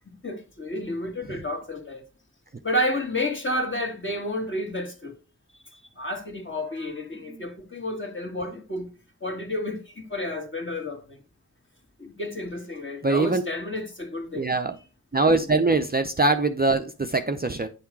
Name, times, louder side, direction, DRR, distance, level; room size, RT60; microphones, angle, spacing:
voice 1, 0.2-2.0 2.6-5.1 6.0-8.9 9.2-11.0 12.0-14.4, left 1 dB, 30° left, 2.1 m, -30 dB
voice 2, 13.0-13.4 14.3-14.8 15.1-17.7, right 3 dB, 25° right, 0.6 m, -23 dB
9.4 x 3.6 x 4.6 m
cardioid pair, 40°, 38 cm